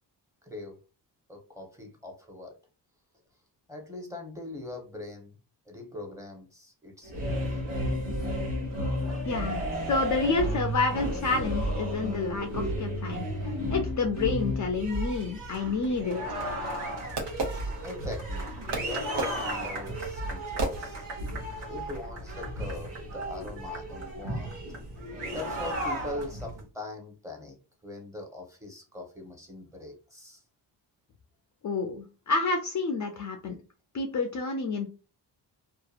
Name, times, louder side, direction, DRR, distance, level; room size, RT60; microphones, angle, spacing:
voice 1, 0.4-0.8 1.3-2.6 3.7-5.4 5.7-7.6 17.8-21.0 21.7-24.6 25.3-30.4, left 2 dB, 5° right, 0 dB, 0.8 m, -42 dB
sound 1, 7.0-26.6, equal, 85° right, 1.2 m, -33 dB
voice 2, 9.3-13.2 13.7-16.2 31.6-33.6 33.9-34.9, left 3 dB, 45° left, 4 dB, 0.4 m, -29 dB
Fireworks, 16.0-18.3 18.7-21.4, right 2 dB, 65° right, 0.9 m, -35 dB
2.8 x 2.3 x 2.3 m, 0.33 s
cardioid pair, 90°, 44 cm